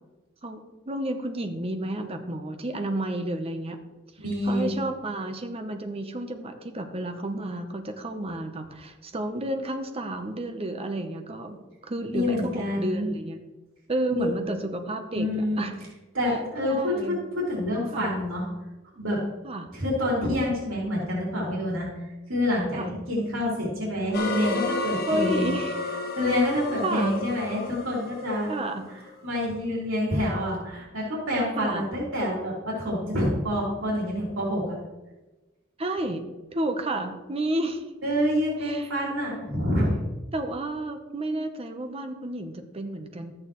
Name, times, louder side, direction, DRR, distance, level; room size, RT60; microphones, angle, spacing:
voice 1, 0.4-3.8 4.4-13.4 13.9-15.3 15.6-15.8 16.6-17.2 17.9-18.1 19.4-19.7 22.8-22.9 25.1-25.8 26.8-27.2 28.5-28.8 31.6-31.9 35.8-36.3 36.5-37.9 38.6-38.9 40.3-43.3, right 1 dB, 30° right, 6 dB, 0.8 m, -31 dB
voice 2, 4.2-4.7 12.1-13.1 14.1-14.3 15.2-15.6 16.2-17.2 17.5-18.5 18.9-19.2 19.7-22.0 22.3-25.6 26.2-28.5 29.2-34.8 38.0-40.0, left 1 dB, 85° right, -5 dB, 3.4 m, -27 dB
sound 1, 24.1-29.1, left 3 dB, 50° left, 1.3 m, -32 dB
13.0 x 8.7 x 3.1 m, 1.1 s
head